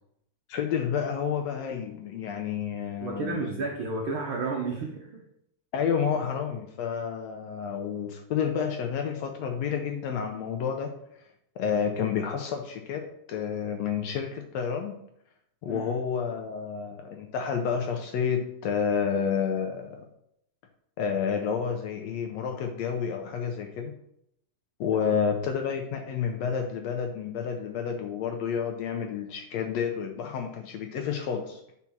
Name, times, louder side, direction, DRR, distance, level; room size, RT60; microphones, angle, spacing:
voice 1, 0.5-3.6 5.7-10.9 11.6-15.0 15.6-20.1 21.0-24.0 24.8-31.6, left 7 dB, 75° left, 3 dB, 1.6 m, -30 dB
voice 2, 3.0-5.2 15.6-15.9 25.0-25.2, right 3 dB, 80° right, 0 dB, 1.1 m, -32 dB
6.0 x 4.1 x 5.8 m, 0.75 s
omnidirectional pair, 3.6 m